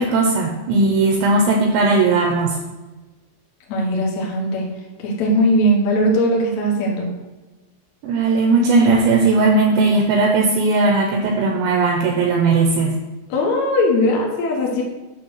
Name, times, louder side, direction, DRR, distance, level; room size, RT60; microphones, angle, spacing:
voice 1, 0.0-2.6 8.0-12.9, right 3 dB, 80° right, 1 dB, 2.6 m, -17 dB
voice 2, 3.7-4.7 5.0-7.1 13.3-14.8, equal, 85° left, -2 dB, 1.6 m, -19 dB
9.1 x 3.2 x 6.4 m, 1.1 s
omnidirectional pair, 5.6 m